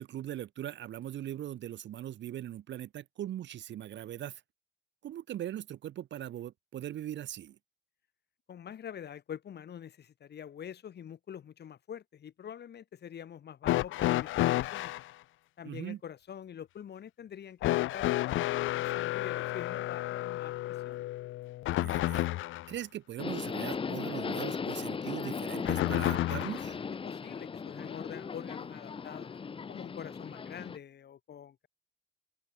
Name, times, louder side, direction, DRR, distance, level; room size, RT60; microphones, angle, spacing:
voice 1, 0.0-4.4 5.0-7.6 15.6-16.0 21.7-22.3 22.7-26.8, right 12 dB, 65° right, 0.9 m, -40 dB
voice 2, 8.5-14.9 15.6-21.0 27.0-29.3 29.7-31.7, left 9 dB, 55° left, 2.5 m, -45 dB
sound 1, 13.6-15.1 17.6-22.7 25.6-26.7 27.9-28.0 29.1-29.2, left 16 dB, 80° left, 0.5 m, -31 dB
Subway metro underground, 23.2-30.8, left 5 dB, 25° left, 0.6 m, -37 dB
open air
cardioid pair, 90°, 20 cm